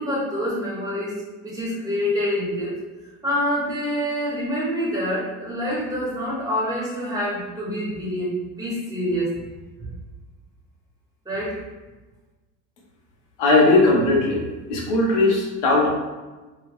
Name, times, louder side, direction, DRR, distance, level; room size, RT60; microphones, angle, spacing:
voice 1, 0.0-2.8 3.2-9.3 11.2-11.6, equal, 10° right, -6 dB, 1.1 m, -26 dB
voice 2, 13.4-14.4 14.7-15.9, left 2 dB, 90° left, -2 dB, 1.0 m, -18 dB
2.8 x 2.3 x 3.5 m, 1.2 s
supercardioid pair, 120°, 34 cm